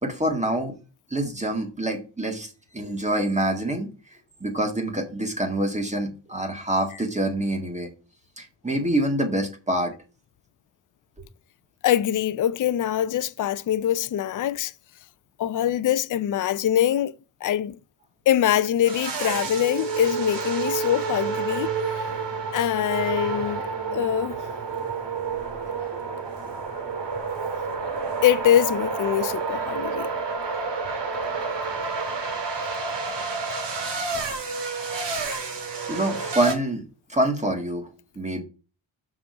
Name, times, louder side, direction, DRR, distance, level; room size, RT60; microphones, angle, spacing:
voice 1, 0.0-0.7 1.1-7.9 8.4-9.9 35.9-36.8 37.1-37.9 38.1-38.4, right 1 dB, 15° right, 1.8 m, -26 dB
voice 2, 11.8-14.7 15.4-17.1 17.4-17.8 18.3-22.0 22.5-24.4 28.2-30.1, left 11 dB, 45° left, 0.4 m, -23 dB
sound 1, 18.8-36.5, right 4 dB, 65° right, 2.0 m, -29 dB
6.3 x 6.0 x 4.7 m
wide cardioid pair, 155°, 46 cm